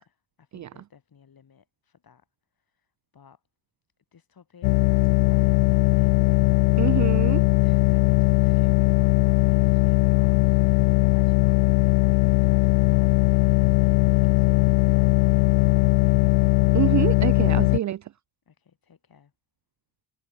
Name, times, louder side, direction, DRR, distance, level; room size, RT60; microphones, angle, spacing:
voice 1, 0.0-2.3 2.5-3.4 4.1-6.7 7.0-16.3 18.5-19.3, left 7 dB, 45° left, 6.5 m, -56 dB
sound 1, 4.6-17.8, left 29 dB, 80° left, 0.6 m, -19 dB
voice 2, 6.8-7.4 16.7-18.0, right 12 dB, 40° right, 0.5 m, -26 dB
supercardioid pair, 60°, 48 cm